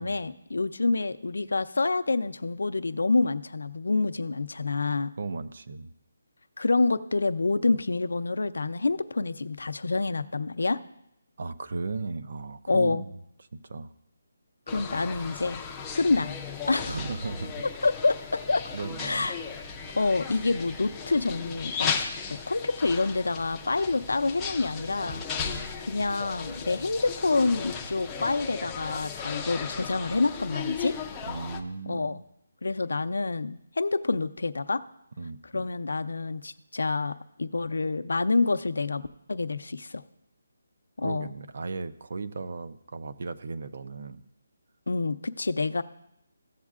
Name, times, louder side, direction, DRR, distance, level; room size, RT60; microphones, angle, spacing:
voice 1, 0.0-5.1 6.6-10.8 12.7-13.0 14.7-15.6 16.0-16.3 16.7-17.0 17.8-18.7 19.0-19.4 20.0-25.2 25.8-31.0 31.8-32.2 32.6-34.8 35.5-39.0 39.3-40.0 41.0-41.3 44.9-45.8, left 3 dB, 90° left, 11 dB, 0.5 m, -27 dB
voice 2, 5.2-5.9 11.4-13.2 13.5-13.9 16.8-17.6 18.7-19.3 25.3-25.7 31.3-32.2 35.2-35.7 41.0-44.2, right 3 dB, 50° right, 11 dB, 0.5 m, -36 dB
sound 1, 14.7-31.6, left 6 dB, 10° left, 0.4 m, -36 dB
15.0 x 7.3 x 2.4 m, 0.79 s
hypercardioid pair, 175°, 0 cm